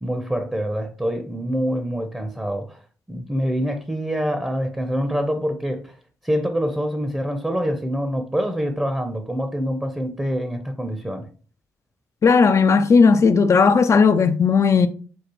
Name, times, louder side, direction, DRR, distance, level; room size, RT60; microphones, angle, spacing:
voice 1, 0.0-2.8 3.1-5.9 6.2-11.3, equal, 10° right, 0.7 m, -25 dB
voice 2, 12.2-14.9, left 5 dB, 40° left, 0.4 m, -15 dB
6.2 x 2.3 x 3.0 m
hypercardioid pair, 50°, 8 cm